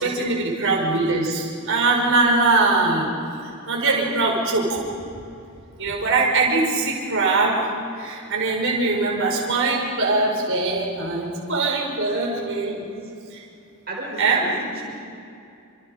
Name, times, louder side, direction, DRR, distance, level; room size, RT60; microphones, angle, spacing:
voice 1, 0.0-3.1 3.7-4.8 5.8-7.7 8.0-12.8 13.3-13.4 14.2-14.4, right 3 dB, 60° right, -1 dB, 5.3 m, -22 dB
voice 2, 13.9-15.0, right 2 dB, 45° right, -2 dB, 6.4 m, -33 dB
29.0 x 27.5 x 5.2 m, 2.5 s
head